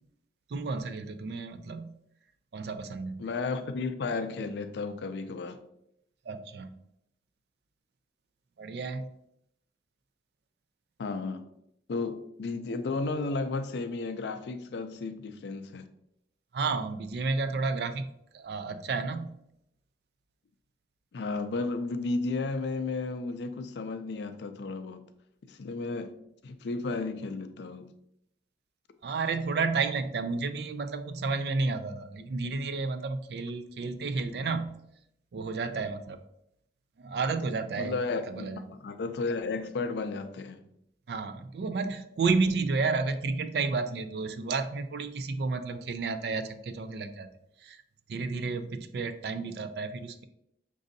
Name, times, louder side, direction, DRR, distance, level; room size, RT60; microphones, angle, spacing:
voice 1, 0.5-1.9 2.5-3.2 6.3-6.7 8.6-9.1 16.5-19.4 29.0-34.8 35.3-36.2 37.0-38.0 38.3-38.6 41.1-47.3 47.6-47.8 48.1-50.2, right 4 dB, 65° right, 0.4 m, -31 dB
voice 2, 3.2-5.6 11.0-11.4 11.9-15.9 21.1-25.0 25.5-26.1 26.4-27.9 37.8-40.6, left 3 dB, 75° left, 0.4 m, -33 dB
6.1 x 2.6 x 2.6 m
head